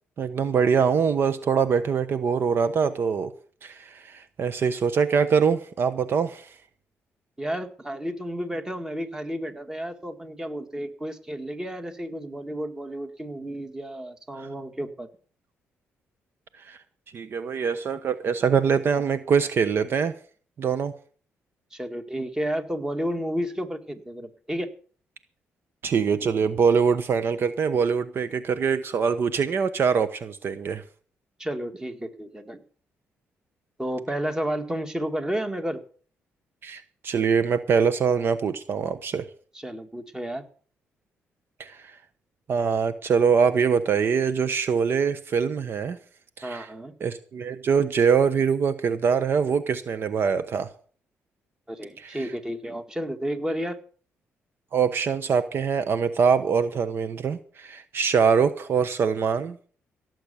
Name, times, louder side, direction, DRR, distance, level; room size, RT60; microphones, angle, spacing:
voice 1, 0.2-3.3 3.6-6.5 14.4-14.5 16.6-16.8 17.1-20.1 20.6-20.9 25.8-30.8 36.6-39.3 41.6-41.9 42.5-46.0 46.4-46.7 47.0-50.7 52.0-52.3 54.7-59.6, right 6 dB, 55° right, 12 dB, 1.0 m, -23 dB
voice 2, 7.4-15.1 21.7-24.7 31.4-32.6 33.8-35.8 39.5-40.4 46.4-46.9 51.7-53.8, equal, 15° right, 7 dB, 1.9 m, -31 dB
17.0 x 7.8 x 6.9 m, 0.43 s
cardioid pair, 100°, 5 cm